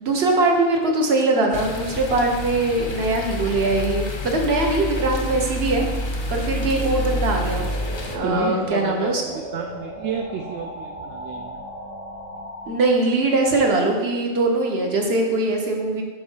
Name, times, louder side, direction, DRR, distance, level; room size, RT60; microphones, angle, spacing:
voice 1, 0.0-5.8 6.3-7.7 8.1-9.2 12.7-16.0, right 2 dB, 50° right, 2 dB, 1.2 m, -21 dB
sound 1, 1.5-8.2, left 2 dB, 45° left, 0.3 m, -28 dB
sound 2, 5.6-12.8, equal, 30° right, 1.8 m, -37 dB
voice 2, 8.2-11.6, right 6 dB, 65° right, 3 dB, 0.8 m, -31 dB
8.6 x 3.8 x 5.5 m, 1.5 s
omnidirectional pair, 1.4 m